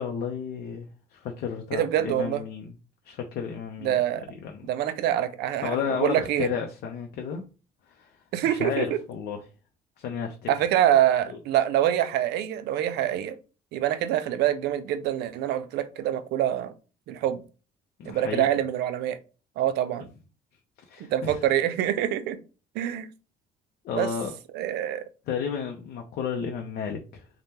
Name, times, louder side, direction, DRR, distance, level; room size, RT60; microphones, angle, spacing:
voice 1, 0.0-2.7 3.0-4.0 4.3-4.7 5.6-7.4 7.9-8.2 8.5-9.4 10.0-10.5 11.3-11.4 18.0-18.5 20.9-21.4 23.8-24.3 25.3-27.3, left 7 dB, 70° left, 0.5 m, -32 dB
voice 2, 1.7-2.4 3.8-4.2 4.7-6.5 8.3-9.0 10.5-13.4 13.7-16.7 17.1-17.4 18.0-19.2 19.6-20.1 21.1-22.4 22.8-23.1 23.9-24.1 24.5-25.0, right 11 dB, 75° right, 0.4 m, -25 dB
3.4 x 2.1 x 2.8 m
cardioid pair, 110°, 17 cm